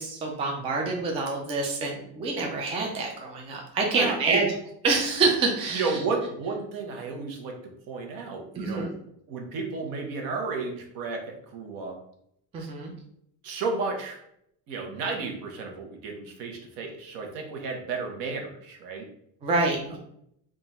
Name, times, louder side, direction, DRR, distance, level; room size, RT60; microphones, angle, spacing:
voice 1, 0.0-4.5 4.8-6.0 8.5-8.9 12.5-12.9 19.4-20.0, right 3 dB, 15° right, 0 dB, 0.3 m, -27 dB
voice 2, 3.8-4.4 5.7-7.5 7.9-8.9 9.3-12.0 13.4-14.2 14.7-19.1, right 4 dB, 60° right, 2 dB, 1.0 m, -32 dB
3.7 x 2.5 x 4.1 m, 0.73 s
cardioid pair, 170°, 38 cm